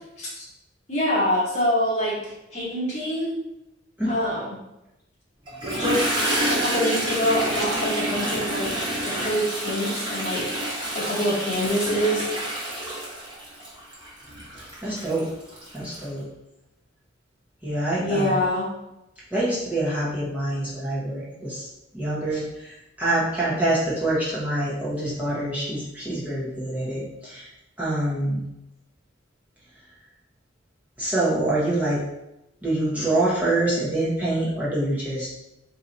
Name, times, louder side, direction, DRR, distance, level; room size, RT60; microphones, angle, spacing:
voice 1, 0.9-3.3 4.1-4.6 5.7-10.5 10.9-12.3 18.0-18.7, equal, 35° left, -7 dB, 1.3 m, -25 dB
Toilet flush, 5.5-16.0, right 1 dB, 25° right, 1.2 m, -28 dB
voice 2, 14.5-15.3 15.7-16.3 17.6-18.4 19.3-21.7 21.9-27.5 27.8-28.4 31.0-32.0 32.6-35.3, right 1 dB, 10° right, -8 dB, 0.9 m, -26 dB
3.9 x 2.8 x 4.0 m, 0.90 s
head